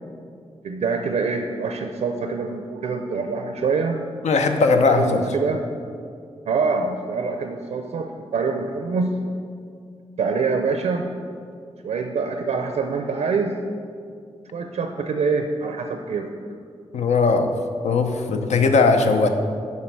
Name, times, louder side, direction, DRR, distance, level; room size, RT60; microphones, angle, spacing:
voice 1, 0.6-4.0 4.7-5.6 6.5-9.2 10.2-11.1 11.8-13.6 14.5-16.3, right 4 dB, 90° right, 5 dB, 0.5 m, -25 dB
voice 2, 4.2-5.2 16.9-17.5 17.8-19.3, left 4 dB, 85° left, 6 dB, 0.6 m, -18 dB
7.4 x 5.7 x 4.6 m, 2.3 s
wide cardioid pair, 95°, 11 cm